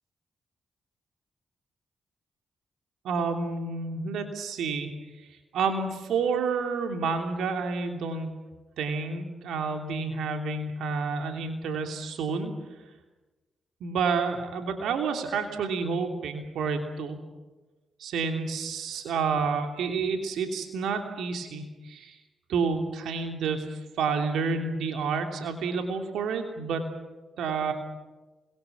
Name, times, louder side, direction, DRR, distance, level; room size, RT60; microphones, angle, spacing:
voice 1, 3.0-4.9 5.5-8.3 8.8-12.5 13.8-17.2 18.0-22.2 22.5-26.8 27.4-27.7, right 5 dB, 75° right, 5 dB, 3.1 m, -29 dB
27.5 x 22.5 x 7.1 m, 1.2 s
hypercardioid pair, 40°, 0 cm